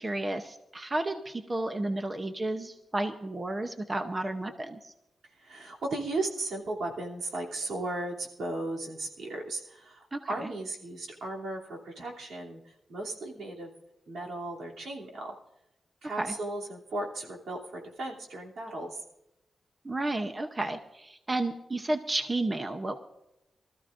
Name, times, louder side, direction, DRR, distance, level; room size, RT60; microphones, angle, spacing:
voice 1, 0.0-4.9 10.1-10.5 16.2-16.3 19.8-23.0, right 2 dB, 20° right, 7 dB, 0.7 m, -32 dB
voice 2, 5.3-13.7 14.1-15.4 16.0-19.0, right 2 dB, 80° right, -1 dB, 2.8 m, -36 dB
23.5 x 14.0 x 2.5 m, 0.89 s
wide cardioid pair, 175°, 0 cm